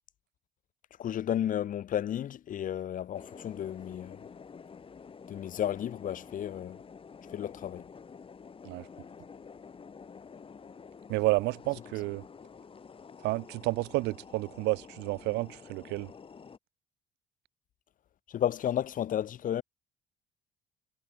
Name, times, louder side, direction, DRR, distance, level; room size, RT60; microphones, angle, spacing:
voice 1, 1.0-4.2 5.3-6.8 7.3-7.9 18.3-19.6, left 10 dB, 50° left, 1.3 m, -33 dB
sound 1, 3.1-16.6, left 6 dB, 30° left, 4.5 m, -49 dB
voice 2, 11.1-12.2 13.2-16.1, right 21 dB, 90° right, 0.8 m, -30 dB
cardioid pair, 110°, 17 cm